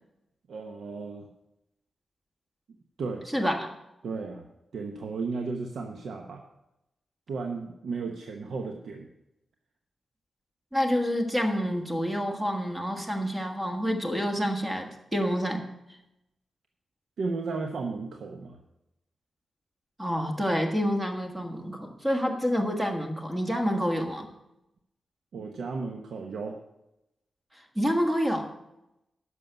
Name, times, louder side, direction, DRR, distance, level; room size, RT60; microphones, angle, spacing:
voice 1, 0.5-1.3 3.0-3.2 4.0-4.5 4.7-6.4 7.3-9.1 17.2-18.6 25.3-26.6, right 4 dB, 85° right, 3 dB, 0.9 m, -34 dB
voice 2, 3.3-3.7 10.7-15.7 20.0-24.3 27.7-28.5, equal, 15° right, 3 dB, 1.6 m, -28 dB
11.0 x 6.5 x 6.8 m, 0.90 s
wide cardioid pair, 125°, 0 cm